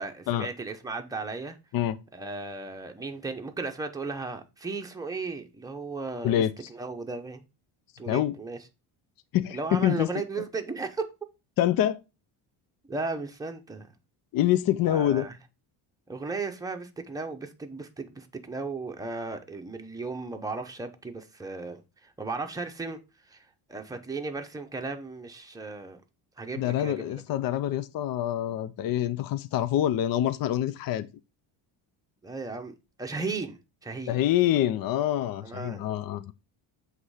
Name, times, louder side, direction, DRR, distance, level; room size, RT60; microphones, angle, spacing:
voice 1, 0.0-1.6 2.1-7.4 8.0-8.6 9.5-11.1 12.9-13.9 14.9-15.4 16.1-26.0 26.4-27.2 32.2-34.2 35.4-35.9, right 3 dB, 5° right, 0.9 m, -36 dB
voice 2, 9.3-10.1 11.6-12.0 14.3-15.2 26.6-31.1 34.1-36.3, left 12 dB, 45° left, 0.5 m, -26 dB
7.7 x 3.3 x 4.8 m
cardioid pair, 115°, 49 cm